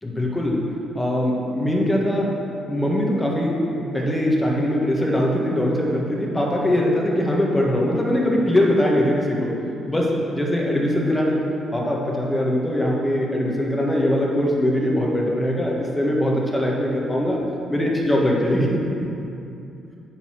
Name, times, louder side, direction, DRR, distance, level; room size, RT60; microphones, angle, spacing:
voice 1, 0.0-0.6 0.9-9.5 9.9-11.5 11.7-17.4 17.7-18.8, left 1 dB, 15° left, -2 dB, 1.7 m, -21 dB
10.0 x 4.1 x 6.5 m, 2.6 s
cardioid pair, 90°, 0 cm